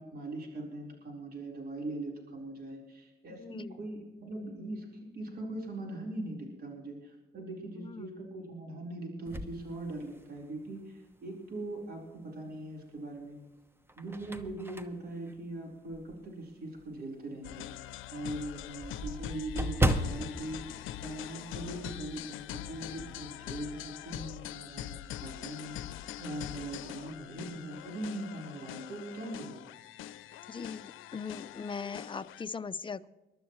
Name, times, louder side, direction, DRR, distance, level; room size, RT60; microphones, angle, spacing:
voice 1, 0.0-13.4 13.9-29.7, right 1 dB, 50° right, -1 dB, 4.3 m, -41 dB
voice 2, 3.3-3.8 7.8-8.1 30.5-33.1, left 5 dB, 25° left, 12 dB, 0.6 m, -40 dB
sound 1, 9.3-10.6 11.1-11.2 12.7-13.2 13.7-16.3 16.8-16.9 17.3-17.4 17.7-17.8 18.0-21.8 22.0-22.3 22.6-23.2, right 1 dB, 10° right, 1.0 m, -35 dB
sound 2, 17.4-32.4, left 13 dB, 85° left, 0.6 m, -43 dB
22.5 x 12.0 x 3.2 m, 1.1 s
cardioid pair, 90°, 20 cm